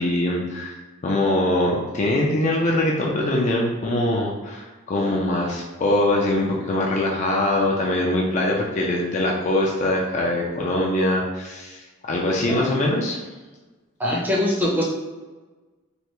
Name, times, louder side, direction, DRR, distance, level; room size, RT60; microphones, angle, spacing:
voice 1, 0.0-13.2, left 1 dB, 35° left, -2 dB, 0.4 m, -23 dB
voice 2, 14.0-14.8, left 1 dB, 10° right, -5 dB, 0.6 m, -22 dB
3.3 x 2.4 x 2.9 m, 1.3 s
head